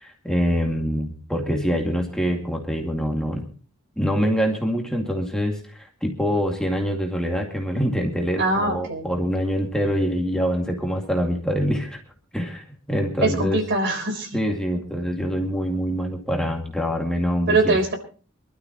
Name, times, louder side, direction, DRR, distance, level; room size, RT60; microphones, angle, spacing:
voice 1, 0.0-3.5 4.0-12.0 12.3-13.6 14.3-17.8, equal, 5° left, 1 dB, 2.1 m, -25 dB
voice 2, 8.4-9.1 13.2-14.3 17.5-18.0, right 2 dB, 55° right, 5 dB, 3.9 m, -22 dB
24.5 x 12.5 x 3.0 m, 0.37 s
head